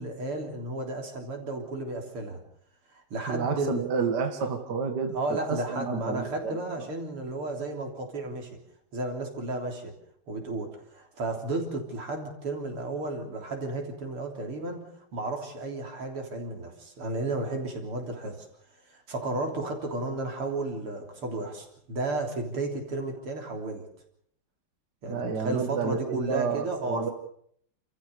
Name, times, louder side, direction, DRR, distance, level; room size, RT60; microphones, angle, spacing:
voice 1, 0.0-2.4 2.9-3.8 5.1-8.5 8.9-9.9 10.3-18.5 18.9-23.8 25.0-27.1, right 2 dB, 90° right, 2 dB, 4.4 m, -33 dB
voice 2, 3.3-6.6 25.1-27.1, right 5 dB, 50° right, 5 dB, 2.4 m, -30 dB
29.0 x 14.5 x 6.9 m, 0.65 s
omnidirectional pair, 2.4 m